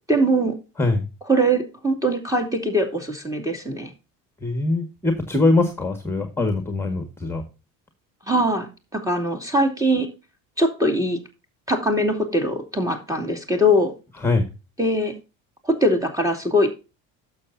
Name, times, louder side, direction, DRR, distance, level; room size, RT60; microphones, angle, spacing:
voice 1, 0.1-0.6 1.3-3.9 8.3-10.1 10.6-11.2 11.7-13.9 14.8-15.1 15.6-16.7, equal, 10° right, 2 dB, 2.7 m, -21 dB
voice 2, 4.4-7.4 14.2-14.5, left 2 dB, 5° left, 6 dB, 1.8 m, -22 dB
12.0 x 7.2 x 2.7 m, 0.29 s
cardioid pair, 110°, 35 cm